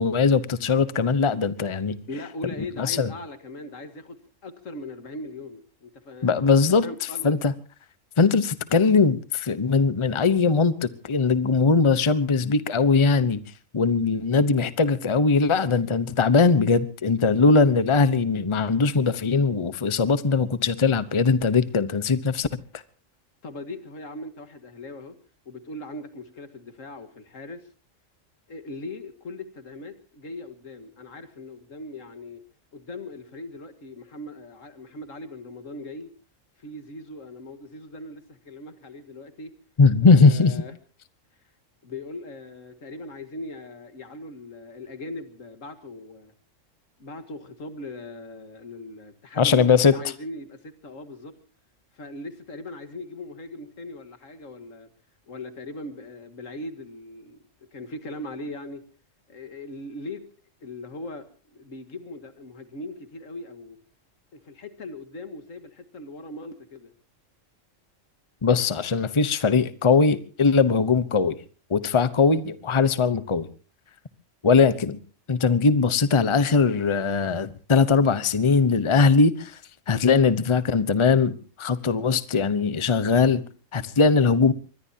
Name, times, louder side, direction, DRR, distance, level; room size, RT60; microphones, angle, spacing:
voice 1, 0.0-2.0 2.8-3.1 6.2-6.8 7.2-7.5 8.2-13.4 13.7-22.5 39.8-40.5 49.4-49.9 68.4-71.4 71.7-73.5 74.4-75.0 75.3-79.6 79.9-83.4 83.7-84.5, left 4 dB, 25° left, 0.9 m, -20 dB
voice 2, 2.1-6.3 6.8-7.4 23.4-25.2 25.5-27.7 28.5-32.4 32.7-36.1 36.6-39.6 40.0-40.7 41.8-46.3 47.0-51.3 51.9-54.9 55.3-58.8 59.3-60.3 60.6-63.8 64.3-66.9, left 2 dB, 85° left, 2.2 m, -39 dB
24.0 x 21.0 x 2.8 m
omnidirectional pair, 1.3 m